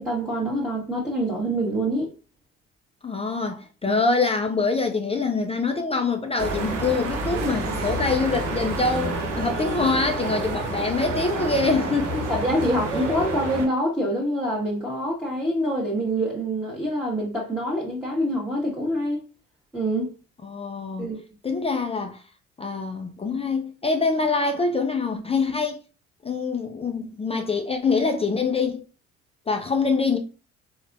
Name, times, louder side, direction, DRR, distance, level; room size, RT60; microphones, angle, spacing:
voice 1, 0.0-2.1 3.8-4.0 12.3-19.2 19.7-20.1 21.0-21.2, equal, ahead, 1.0 m, -25 dB
voice 2, 3.0-12.3 20.4-21.1 21.4-22.2 22.6-25.8 26.2-28.8 29.5-30.2, left 4 dB, 15° left, 0.4 m, -25 dB
sound 1, 6.4-13.7, right 2 dB, 90° right, 0.6 m, -28 dB
3.9 x 2.1 x 2.5 m
figure-of-eight pair, 50°, 36 cm